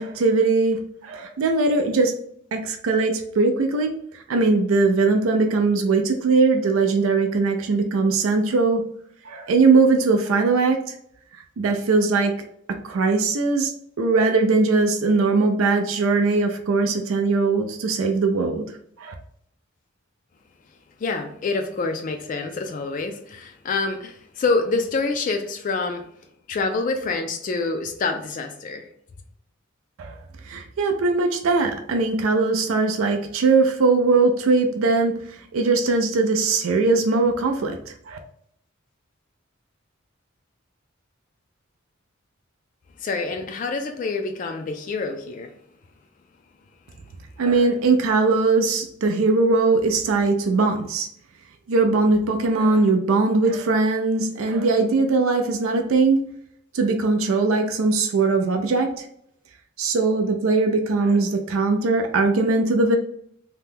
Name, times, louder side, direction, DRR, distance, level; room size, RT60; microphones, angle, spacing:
voice 1, 0.0-2.1 2.5-8.8 9.2-11.0 11.6-12.3 12.8-13.7 14.0-18.6 19.0-19.1 30.0-30.2 30.4-38.2 47.4-51.1 51.7-56.2 56.7-59.1 59.8-63.0, right 3 dB, 80° right, 0.4 m, -20 dB
voice 2, 21.0-26.0 26.5-28.9 43.0-45.5, left 3 dB, 40° left, 0.3 m, -26 dB
2.8 x 2.2 x 3.4 m
head